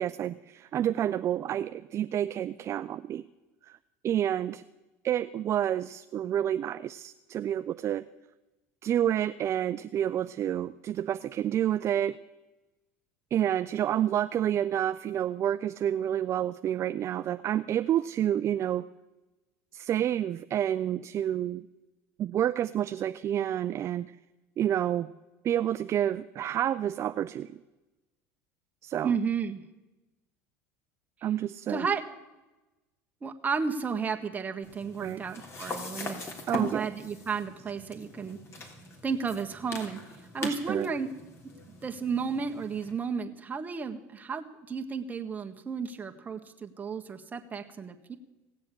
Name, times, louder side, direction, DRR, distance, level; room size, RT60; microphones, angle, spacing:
voice 1, 0.0-3.2 3.6-3.8 4.0-4.6 5.0-8.1 8.8-12.2 13.3-18.9 19.7-21.6 22.2-24.1 24.6-25.1 25.4-27.6 28.8-29.1 31.2-31.9 35.0-35.2 36.5-36.9 40.4-40.9, right 10 dB, 40° right, 12 dB, 0.5 m, -29 dB
voice 2, 29.0-29.6 31.7-32.0 33.2-36.2 36.5-38.4 39.0-40.0 40.3-41.2 41.8-48.2, right 5 dB, 25° right, 4 dB, 1.5 m, -33 dB
sound 1, 34.6-42.9, left 3 dB, 40° left, 3.2 m, -41 dB
17.5 x 7.7 x 8.5 m, 1.1 s
supercardioid pair, 95°, 7 cm